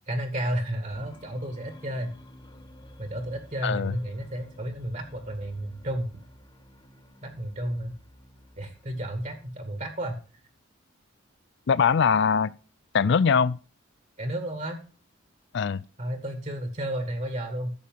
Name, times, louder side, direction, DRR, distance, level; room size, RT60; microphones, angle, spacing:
voice 1, 0.1-2.1 3.0-6.1 7.2-7.9 8.6-10.2 14.2-14.8 16.0-17.7, right 1 dB, 35° right, 1.9 m, -32 dB
sound 1, 0.9-10.5, equal, 25° left, 1.7 m, -52 dB
voice 2, 3.6-3.9 11.7-12.5 12.9-13.6 15.5-15.8, left 6 dB, 60° left, 0.4 m, -22 dB
12.5 x 8.3 x 3.9 m
head